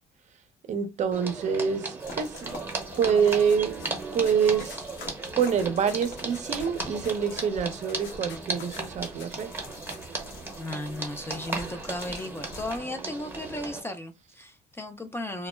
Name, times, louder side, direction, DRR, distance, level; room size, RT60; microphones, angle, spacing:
voice 1, 0.7-2.7 3.0-3.8 4.1-4.8 5.4-9.5, right 7 dB, 45° right, 0.5 m, -26 dB
sound 1, 1.1-13.8, right 3 dB, 15° right, 0.8 m, -36 dB
sound 2, 2.0-12.8, left 3 dB, 60° left, 0.9 m, -45 dB
sound 3, 3.5-3.9 4.3-5.1 5.4-9.3 9.9-10.0, left 4 dB, 85° left, 0.7 m, -46 dB
voice 2, 10.6-15.5, left 1 dB, 15° left, 0.3 m, -35 dB
2.1 x 2.0 x 3.2 m
cardioid pair, 110°, 17 cm